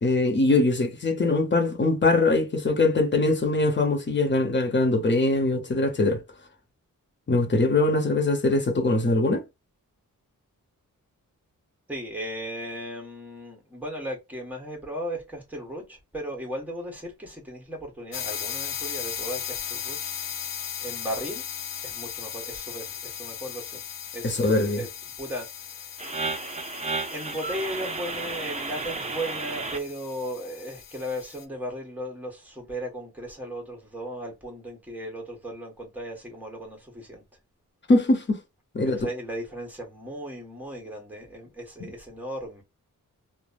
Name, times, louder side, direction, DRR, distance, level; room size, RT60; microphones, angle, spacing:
voice 1, 0.0-6.2 7.3-9.4 24.2-24.8 37.9-38.4 38.7-39.0, left 2 dB, 35° left, 0.8 m, -22 dB
voice 2, 11.9-20.1 20.8-21.4 21.8-23.8 24.1-24.9 25.2-26.2 27.1-37.2 38.8-42.6, equal, 5° right, 1.4 m, -36 dB
sound 1, 18.1-31.4, left 8 dB, 80° left, 0.6 m, -37 dB
sound 2, 26.0-29.8, right 3 dB, 20° right, 0.5 m, -32 dB
3.2 x 2.1 x 2.4 m
wide cardioid pair, 130°, 33 cm